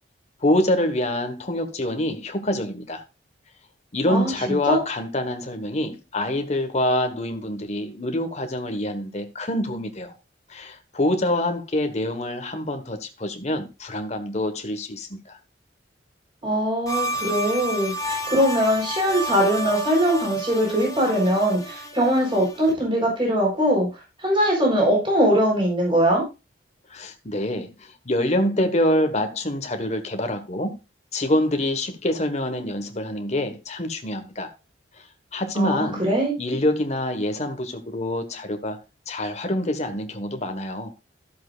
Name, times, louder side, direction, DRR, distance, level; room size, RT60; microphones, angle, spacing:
voice 1, 0.4-3.0 3.9-10.1 10.5-15.4 26.9-30.8 31.1-34.5 35.3-36.0 36.4-40.9, left 1 dB, 40° left, 1.4 m, -26 dB
voice 2, 4.1-4.8 16.4-23.9 24.2-26.2 35.5-36.3, equal, 30° right, 4.1 m, -21 dB
sound 1, 16.9-22.7, right 1 dB, 20° left, 1.3 m, -31 dB
13.5 x 7.5 x 2.5 m
head